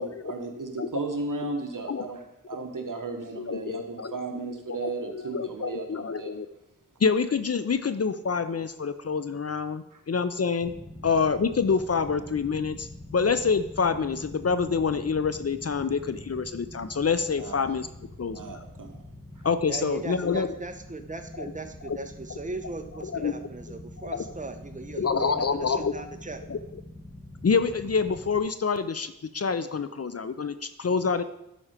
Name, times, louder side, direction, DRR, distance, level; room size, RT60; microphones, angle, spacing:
voice 1, 0.0-6.3 9.9-10.0 17.4-17.6 18.3-19.0, right 3 dB, 60° right, 3 dB, 1.3 m, -35 dB
voice 2, 3.3-4.2 4.8-6.5 7.0-10.7 11.0-17.9 18.2-18.4 19.4-20.5 21.9-22.0 23.1-23.3 24.0-24.2 25.0-25.9 26.5-26.6 27.4-31.2, left 5 dB, 45° left, 12 dB, 0.5 m, -27 dB
sound 1, 10.6-28.4, left 1 dB, 15° left, 1.4 m, -45 dB
voice 3, 19.7-26.4, right 3 dB, 20° right, 7 dB, 0.9 m, -38 dB
12.0 x 4.3 x 5.0 m, 0.84 s
wide cardioid pair, 70°, 35 cm